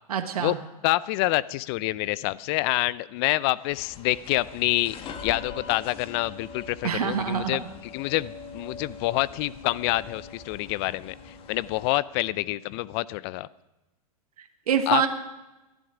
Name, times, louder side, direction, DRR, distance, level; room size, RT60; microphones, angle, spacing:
voice 1, 0.1-0.6 6.8-7.6 14.4-15.1, right 8 dB, 80° right, 6 dB, 1.4 m, -26 dB
voice 2, 0.8-11.1 11.5-13.5 14.9-15.1, left 18 dB, 45° left, 20 dB, 0.5 m, -27 dB
sound 1, 3.7-11.9, left 5 dB, 30° left, 1.4 m, -43 dB
18.5 x 11.5 x 4.9 m, 1.0 s
hypercardioid pair, 120°, 19 cm